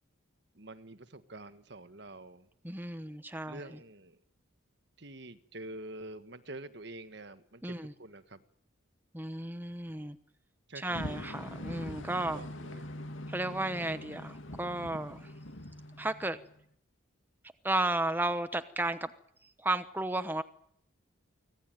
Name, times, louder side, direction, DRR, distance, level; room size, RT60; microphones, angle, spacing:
voice 1, 0.5-2.5 3.4-4.2 5.0-8.4 10.7-11.2 12.2-12.9, right 2 dB, 55° right, 11 dB, 1.6 m, -47 dB
voice 2, 2.6-3.6 7.6-7.9 9.1-10.2 10.7-12.4 13.3-15.3 16.0-16.4 17.6-19.1 19.6-20.4, right 2 dB, 10° right, 10 dB, 1.0 m, -33 dB
sound 1, 10.9-16.6, left 1 dB, 75° left, 2.5 m, -43 dB
25.0 x 17.5 x 9.2 m, 0.66 s
head